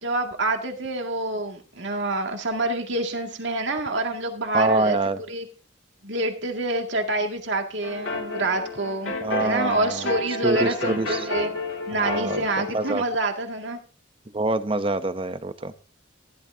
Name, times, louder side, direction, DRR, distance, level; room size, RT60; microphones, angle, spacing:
voice 1, 0.0-5.0 5.3-5.5 6.0-9.1 9.4-11.5 11.9-13.8, right 2 dB, 70° right, 3 dB, 2.2 m, -27 dB
voice 2, 4.5-5.2 9.2-10.1 10.4-11.3 12.0-13.0 14.3-15.7, right 2 dB, 30° right, 11 dB, 0.7 m, -25 dB
sound 1, 7.8-13.0, left 2 dB, 75° left, 2.4 m, -31 dB
15.0 x 11.5 x 2.8 m, 0.37 s
head